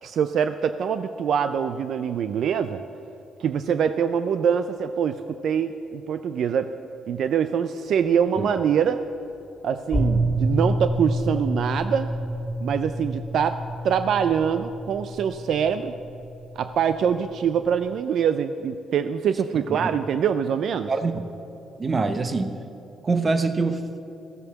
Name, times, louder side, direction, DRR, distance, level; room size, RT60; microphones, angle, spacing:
voice 1, 0.0-2.8 3.4-6.7 7.1-9.0 9.6-12.1 12.6-15.9 16.6-20.9, right 7 dB, 70° right, 10 dB, 0.4 m, -24 dB
sound 1, 9.9-18.0, right 1 dB, 10° left, 2.2 m, -28 dB
voice 2, 20.9-21.2 21.8-22.5 23.0-24.0, right 3 dB, 35° right, 9 dB, 0.9 m, -24 dB
14.5 x 8.0 x 7.0 m, 2.9 s
cardioid pair, 90°, 0 cm